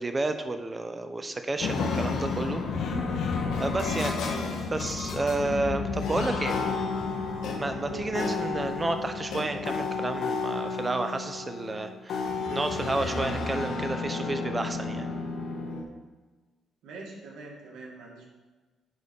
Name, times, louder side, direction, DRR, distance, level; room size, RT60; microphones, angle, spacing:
voice 1, 0.0-2.6 3.6-4.3 4.7-6.6 7.6-15.1, right 2 dB, 25° right, 8 dB, 0.9 m, -31 dB
sound 1, 1.6-15.8, left 4 dB, 80° left, 1.3 m, -31 dB
voice 2, 7.8-8.2 16.8-18.3, right 3 dB, 85° right, -2 dB, 2.1 m, -43 dB
10.0 x 4.3 x 5.4 m, 1.3 s
cardioid pair, 90°, 0 cm